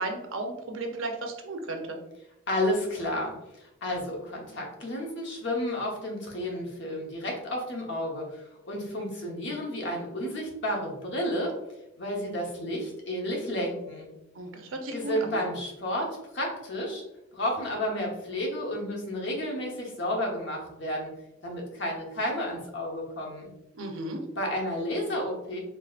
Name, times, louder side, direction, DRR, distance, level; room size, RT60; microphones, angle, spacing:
voice 1, 0.0-2.0 14.3-15.4 23.7-24.2, right 2 dB, 90° right, 4 dB, 0.7 m, -34 dB
voice 2, 2.5-11.5 12.0-14.1 14.9-17.0 17.3-21.1 21.4-23.5 24.4-25.6, left 1 dB, 65° left, 0 dB, 1.0 m, -31 dB
4.7 x 2.9 x 2.4 m, 0.90 s
head